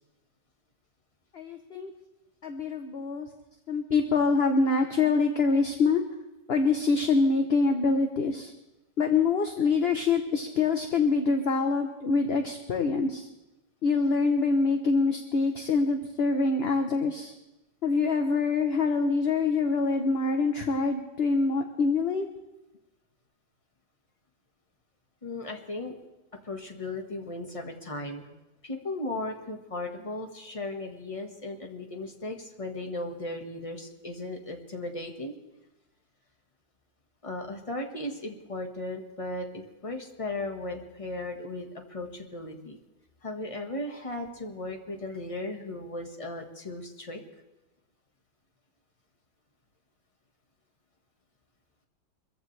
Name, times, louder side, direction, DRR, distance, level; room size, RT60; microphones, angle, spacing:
voice 1, 1.3-1.9 2.4-3.3 3.7-6.0 6.5-8.5 9.0-13.3 13.8-17.3 17.8-22.3, left 4 dB, 45° left, 5 dB, 0.9 m, -25 dB
voice 2, 14.6-15.1 18.6-20.8 25.2-25.9 26.4-28.3 28.6-35.4 37.2-42.8 43.2-47.2, left 2 dB, 20° left, 3 dB, 1.5 m, -37 dB
24.5 x 15.0 x 3.3 m, 1.0 s
omnidirectional pair, 1.9 m